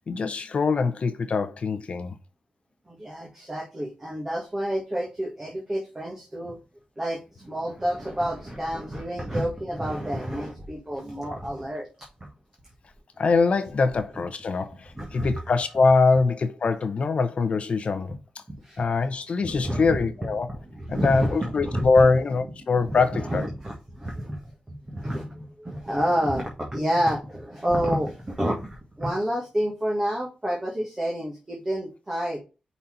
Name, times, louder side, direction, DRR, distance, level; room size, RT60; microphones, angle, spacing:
voice 1, 0.0-2.1 13.2-18.1 18.8-20.5 20.9-23.5, left 4 dB, 55° left, 0.8 m, -23 dB
voice 2, 2.9-6.6 7.0-11.9 12.2-12.3 14.9-15.3 18.5-18.8 19.4-20.0 20.5-22.1 22.8-32.4, equal, 20° right, 1.5 m, -29 dB
5.5 x 4.2 x 4.4 m
wide cardioid pair, 140°, 2 cm